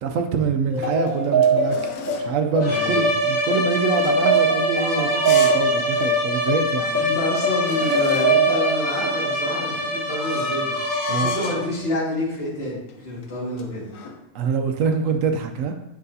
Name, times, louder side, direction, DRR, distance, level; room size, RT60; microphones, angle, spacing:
voice 1, 0.0-7.0 11.1-11.3 14.3-15.7, right 5 dB, 75° right, 6 dB, 0.9 m, -25 dB
sound 1, 0.7-2.4 3.7-5.7 6.1-6.2 6.8-6.9 7.1-8.5 9.5-11.7 12.4-12.6 12.9-14.2, left 5 dB, 75° left, 1.0 m, -35 dB
sound 2, 0.7-9.7, right 2 dB, 15° left, 0.9 m, -23 dB
sound 3, 2.6-11.8, equal, 30° left, 2.5 m, -25 dB
voice 2, 2.7-3.0 6.9-10.8 11.1-13.8, left 1 dB, 45° left, -6 dB, 2.0 m, -28 dB
7.7 x 4.9 x 2.7 m, 0.89 s
omnidirectional pair, 1.5 m